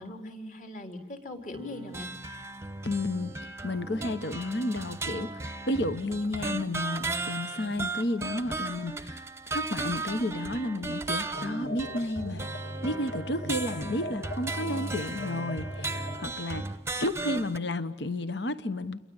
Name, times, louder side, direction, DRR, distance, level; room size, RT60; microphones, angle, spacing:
voice 1, 0.0-2.1, left 1 dB, 40° left, 4 dB, 3.8 m, -40 dB
sound 1, 1.6-17.6, right 3 dB, 15° right, 0.8 m, -36 dB
voice 2, 2.8-3.3 3.6-5.4 5.7-9.3 9.5-12.4 12.8-16.7 17.0-19.0, left 1 dB, 65° left, 12 dB, 1.1 m, -32 dB
sound 2, 11.3-16.3, left 1 dB, 85° left, 2.0 m, -42 dB
29.0 x 22.5 x 8.9 m, 1.1 s
head